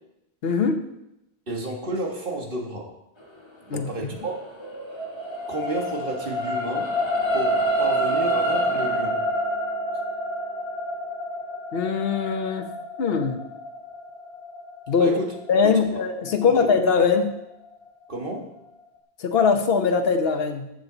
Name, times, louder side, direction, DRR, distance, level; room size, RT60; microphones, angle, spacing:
voice 1, 0.4-0.8 3.7-4.1 11.7-12.7 13.0-13.4 14.9-15.2 15.5-17.3 19.2-20.7, left 5 dB, 70° left, 6 dB, 1.2 m, -21 dB
voice 2, 1.5-2.9 3.7-4.4 5.5-6.9 7.3-9.2 15.0-15.3 15.6-15.8 16.4-16.6 18.1-18.5, right 2 dB, 55° right, 1 dB, 1.8 m, -31 dB
sound 1, 4.2-16.7 17.2-17.3, equal, 25° left, 1.4 m, -27 dB
13.0 x 7.5 x 4.0 m, 0.86 s
omnidirectional pair, 1.1 m